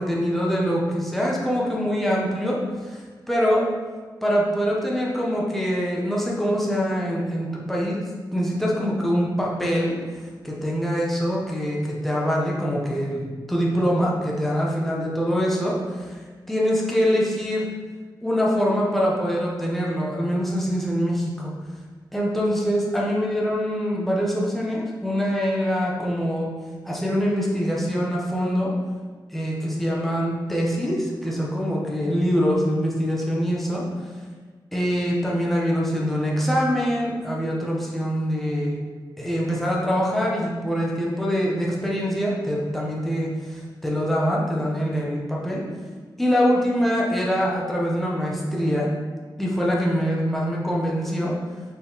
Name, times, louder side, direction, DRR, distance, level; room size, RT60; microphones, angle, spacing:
voice 1, 0.0-2.6 2.8-3.6 4.2-8.0 8.3-10.0 10.4-16.2 16.5-17.7 18.2-21.5 22.1-26.5 26.8-28.7 29.3-33.8 34.7-38.8 39.2-45.6 46.2-48.9 49.4-51.3, equal, ahead, -4 dB, 0.8 m, -24 dB
4.5 x 3.1 x 3.6 m, 1.5 s
wide cardioid pair, 80°, 8 cm